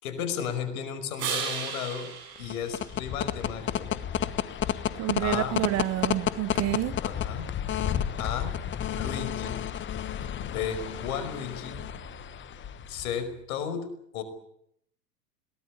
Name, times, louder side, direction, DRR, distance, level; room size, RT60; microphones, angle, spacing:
voice 1, 0.0-2.1 2.4-3.9 5.2-5.6 7.0-7.5 8.2-8.5 8.9-9.7 10.4-11.8 12.9-14.2, left 7 dB, 65° left, 5.5 m, -34 dB
sound 1, 1.2-3.7 9.5-13.5, right 6 dB, 60° right, 7.8 m, -39 dB
sound 2, 2.4-13.1, left 10 dB, 25° left, 1.3 m, -31 dB
voice 2, 5.0-7.0, right 16 dB, 35° right, 0.9 m, -29 dB
22.0 x 19.0 x 9.8 m
hypercardioid pair, 100°, 47 cm